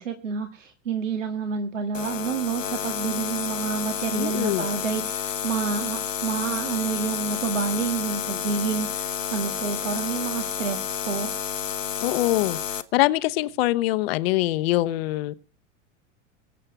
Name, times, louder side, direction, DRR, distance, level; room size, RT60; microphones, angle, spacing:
voice 1, 0.0-11.3, right 6 dB, 70° right, 1.9 m, -29 dB
sound 1, 1.9-12.8, left 8 dB, 75° left, 1.2 m, -30 dB
voice 2, 4.2-4.7 12.0-12.6 12.9-15.3, left 17 dB, 50° left, 1.0 m, -23 dB
23.0 x 7.7 x 6.0 m
figure-of-eight pair, 85°, 39 cm